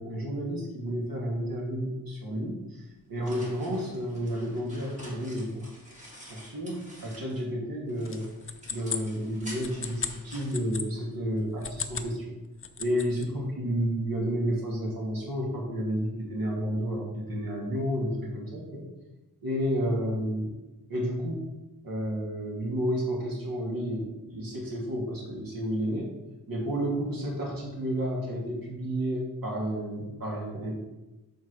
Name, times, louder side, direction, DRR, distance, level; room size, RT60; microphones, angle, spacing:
voice 1, 0.0-2.8 3.1-5.7 6.3-8.3 8.7-12.4 12.8-18.9 19.4-20.6 20.9-21.4 21.8-26.1 26.5-30.8, equal, 70° right, -2 dB, 2.7 m, -31 dB
sound 1, 2.8-7.5 7.9-11.4, equal, 20° right, 2.5 m, -48 dB
sound 2, 8.1-10.9 11.5-12.1 12.5-13.3, left 6 dB, 35° left, 0.6 m, -36 dB
7.9 x 4.6 x 6.4 m, 1.0 s
wide cardioid pair, 150°, 37 cm